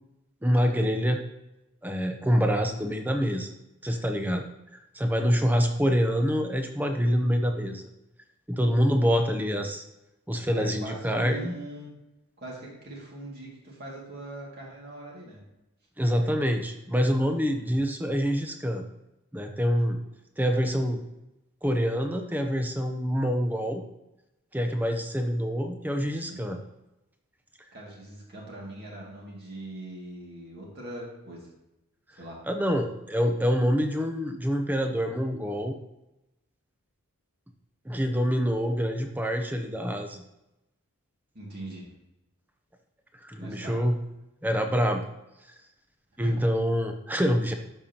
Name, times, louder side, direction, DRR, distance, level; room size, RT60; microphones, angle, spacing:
voice 1, 0.4-1.2 1.8-3.5 3.8-4.4 4.7-7.9 8.5-9.8 10.3-11.5 16.0-18.8 19.3-20.0 20.4-21.0 21.6-23.8 24.5-26.6 32.5-35.8 37.8-40.2 43.2-44.0 44.4-45.0 46.2-47.5, equal, 10° right, 5 dB, 0.7 m, -26 dB
voice 2, 10.5-11.9 12.4-15.4 17.6-17.8 26.2-26.5 27.7-31.5 32.2-32.4 41.3-41.8 43.4-43.8 46.2-46.3, right 1 dB, 45° right, -4 dB, 2.2 m, -41 dB
12.0 x 5.4 x 2.9 m, 0.94 s
head